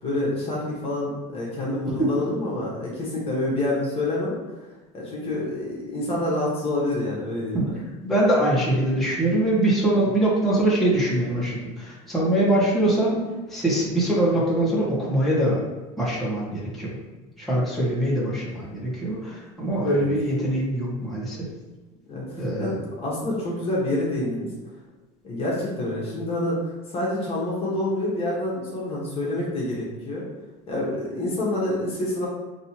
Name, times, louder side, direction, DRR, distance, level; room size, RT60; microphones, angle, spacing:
voice 1, 0.0-4.6 4.9-7.7 19.9-20.0 22.1-24.5 25.2-26.6 26.9-30.3 30.7-32.3, left 1 dB, 35° left, -5 dB, 1.3 m, -27 dB
voice 2, 8.0-13.2 13.5-15.6 16.0-17.0 17.4-21.4 22.4-22.8, right 1 dB, ahead, -8 dB, 1.4 m, -23 dB
5.3 x 2.9 x 2.9 m, 1.3 s
supercardioid pair, 120°, 18 cm